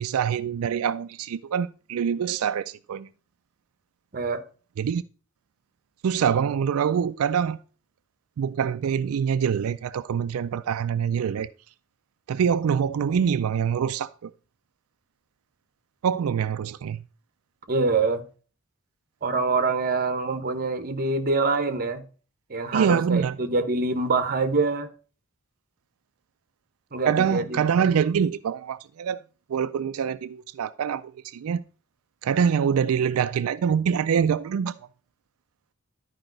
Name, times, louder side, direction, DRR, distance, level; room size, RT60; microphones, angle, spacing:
voice 1, 0.0-3.1 4.8-5.0 6.0-7.6 8.4-11.5 12.3-14.3 16.0-17.0 22.7-23.4 27.1-29.2 29.5-31.6 32.2-34.7, right 7 dB, 90° right, 0.4 m, -25 dB
voice 2, 17.7-18.2 19.2-22.0 22.5-24.9 26.9-28.0, right 3 dB, 45° right, 0.9 m, -25 dB
12.0 x 5.0 x 3.8 m
head